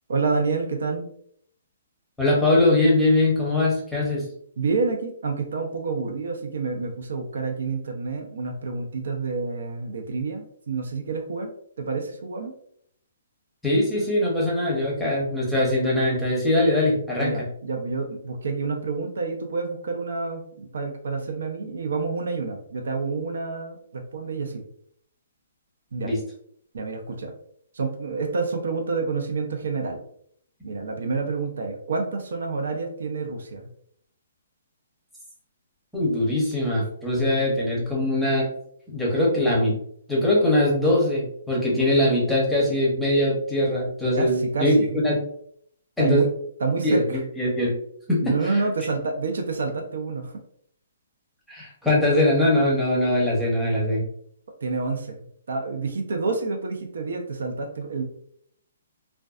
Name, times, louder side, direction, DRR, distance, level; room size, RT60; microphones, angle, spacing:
voice 1, 0.1-1.1 4.6-12.5 17.2-24.6 25.9-26.1 26.7-27.3 27.7-30.0 30.6-33.7 44.2-45.0 46.0-46.3 46.6-47.2 48.2-50.4 54.6-58.0, right 4 dB, 80° right, 4 dB, 0.5 m, -28 dB
voice 2, 2.2-4.3 13.6-17.5 26.0-26.2 35.9-38.5 38.9-39.8 40.1-44.8 45.0-45.2 46.0-46.2 46.8-47.8 48.1-48.7 51.5-54.0, left 1 dB, ahead, -5 dB, 0.7 m, -22 dB
2.5 x 2.2 x 2.3 m, 0.66 s
hypercardioid pair, 160°, 0 cm